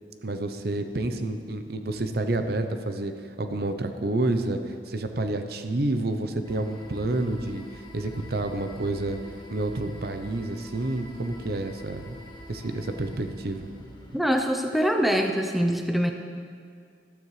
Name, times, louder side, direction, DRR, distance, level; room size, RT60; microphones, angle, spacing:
voice 1, 0.2-7.7 7.9-9.2 9.5-12.2 12.5-14.2, right 2 dB, 60° right, 7 dB, 0.7 m, -29 dB
sound 1, 6.4-14.2, left 1 dB, 25° left, 1.2 m, -45 dB
voice 2, 14.1-16.1, equal, ahead, 3 dB, 0.6 m, -24 dB
14.0 x 12.0 x 3.3 m, 2.2 s
head